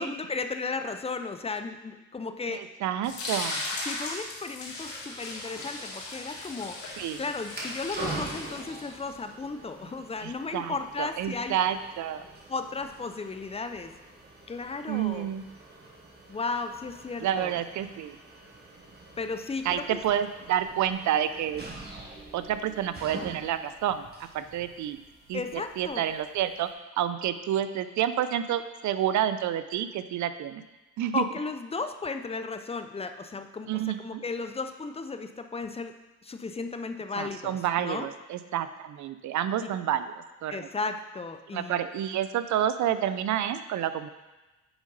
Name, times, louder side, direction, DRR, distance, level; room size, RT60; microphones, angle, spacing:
voice 1, 0.0-2.6 3.8-11.6 12.5-13.9 14.5-15.3 16.3-17.5 19.2-20.0 25.3-26.0 31.1-35.9 36.2-38.1 40.5-41.8, left 4 dB, 20° left, 8 dB, 0.5 m, -35 dB
voice 2, 2.5-3.7 7.0-7.2 10.2-12.2 14.9-15.4 17.2-18.2 19.6-21.6 22.3-25.0 25.3-26.7 27.0-30.6 31.0-31.2 33.7-34.2 37.2-40.7 41.5-44.1, right 10 dB, 70° right, 12 dB, 0.6 m, -29 dB
sound 1, 3.0-9.1, left 2 dB, 75° left, 2.2 m, -37 dB
sound 2, 6.8-26.7, right 2 dB, 35° right, 1.5 m, -45 dB
8.0 x 5.1 x 3.9 m, 1.1 s
cardioid pair, 90°, 30 cm